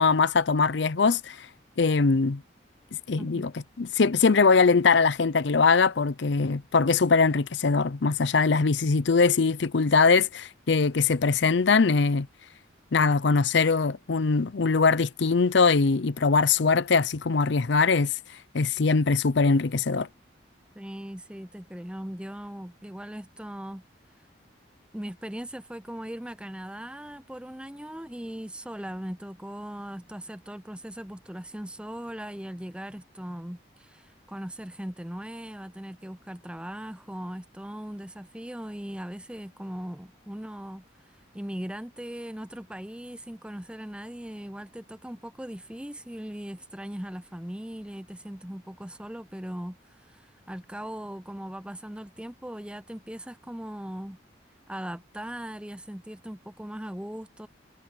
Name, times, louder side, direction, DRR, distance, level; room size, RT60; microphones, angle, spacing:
voice 1, 0.0-1.4 1.8-2.4 3.1-3.5 3.8-12.3 12.9-18.1 18.5-20.1, left 4 dB, 70° left, 0.6 m, -22 dB
voice 2, 20.8-23.8 24.9-40.8 41.3-49.8 50.1-54.2 54.7-57.5, equal, 5° right, 0.7 m, -39 dB
head